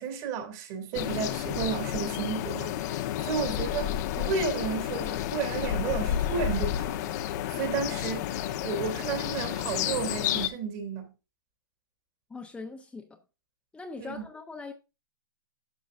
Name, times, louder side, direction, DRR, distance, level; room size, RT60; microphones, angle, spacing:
voice 1, 0.0-7.0 7.5-8.3 8.6-11.1 14.0-14.1, right 6 dB, 45° right, 2.8 m, -32 dB
sound 1, 0.9-10.5, left 11 dB, 50° left, 1.0 m, -31 dB
voice 2, 12.3-13.2 13.7-14.7, left 4 dB, 10° left, 0.9 m, -41 dB
11.5 x 6.3 x 2.6 m
hypercardioid pair, 125°, 12 cm